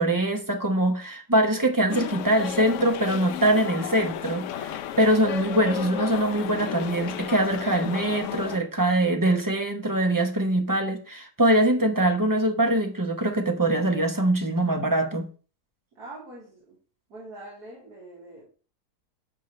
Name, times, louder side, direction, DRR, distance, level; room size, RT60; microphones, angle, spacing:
voice 1, 0.0-15.3, right 1 dB, 15° right, 0.8 m, -23 dB
sound 1, 1.9-8.6, left 9 dB, 65° left, 0.8 m, -33 dB
voice 2, 15.9-16.8 17.1-18.4, right 2 dB, 75° right, 3.3 m, -43 dB
11.0 x 6.5 x 3.2 m
omnidirectional pair, 1.7 m